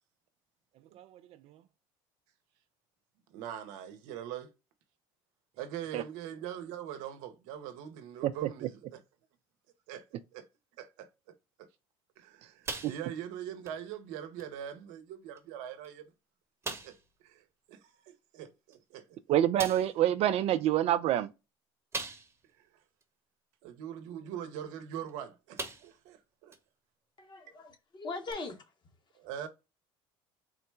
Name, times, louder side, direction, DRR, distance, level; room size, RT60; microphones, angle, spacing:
voice 1, 3.3-4.5 5.6-9.0 9.9-10.0 10.3-10.5 10.8-11.1 11.6-11.7 12.2-16.1 16.8-17.0 17.2-19.2 22.6-22.7 23.6-26.5 29.1-29.5, right 10 dB, 75° right, 0.8 m, -42 dB
sound 1, 12.6-13.3 13.6-13.8 14.4-14.5 15.3-15.4 15.8-15.9 16.6-17.1 18.7-18.8 19.6-20.0 21.9-22.5 23.0-23.1 24.9-25.1 25.6-26.1 26.5-26.6 28.3-28.4, right 3 dB, 20° right, 1.0 m, -39 dB
voice 2, 19.3-21.3, right 12 dB, 55° right, 0.4 m, -26 dB
voice 3, 27.2-28.6 29.4-29.5, left 3 dB, 35° left, 1.2 m, -41 dB
3.8 x 2.1 x 4.5 m
supercardioid pair, 85°, 13 cm